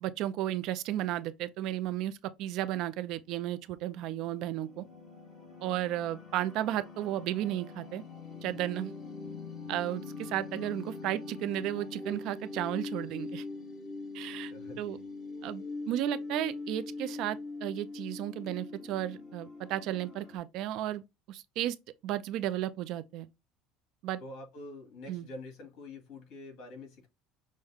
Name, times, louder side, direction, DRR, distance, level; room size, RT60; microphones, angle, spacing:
voice 1, 0.0-4.8 5.6-8.0 8.4-8.9 9.7-13.4 14.1-15.0 15.4-21.8 22.0-23.3 24.0-24.2 25.1-25.3, right 13 dB, 60° right, 0.4 m, -34 dB
sound 1, 3.4-20.4, left 3 dB, 30° left, 1.6 m, -43 dB
voice 2, 14.4-15.1 24.2-27.1, left 2 dB, 60° left, 2.2 m, -46 dB
6.3 x 2.2 x 3.5 m
cardioid pair, 140°, 0 cm